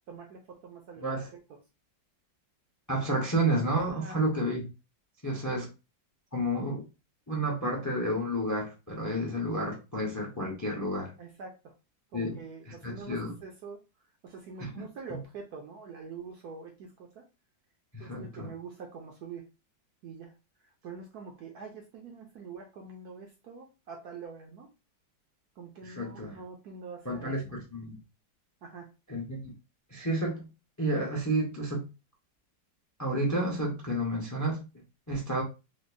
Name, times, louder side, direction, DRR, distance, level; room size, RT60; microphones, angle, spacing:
voice 1, 0.1-1.1 3.9-4.2 5.3-5.7 11.2-11.7 12.1-13.8 14.2-17.3 18.0-19.5 20.0-20.3 20.6-24.7 25.6-27.4 28.6-28.9, right 5 dB, 65° right, 1.0 m, -45 dB
voice 2, 2.9-4.6 5.2-5.7 6.3-6.9 7.3-11.1 12.1-12.4 12.8-13.3 14.6-14.8 15.1-15.2 17.9-18.5 25.8-26.4 27.0-27.9 29.1-29.5 29.9-30.5 30.8-31.9 33.0-34.7 35.1-35.4, right 1 dB, 20° left, 0.5 m, -30 dB
5.1 x 2.1 x 2.5 m
omnidirectional pair, 2.1 m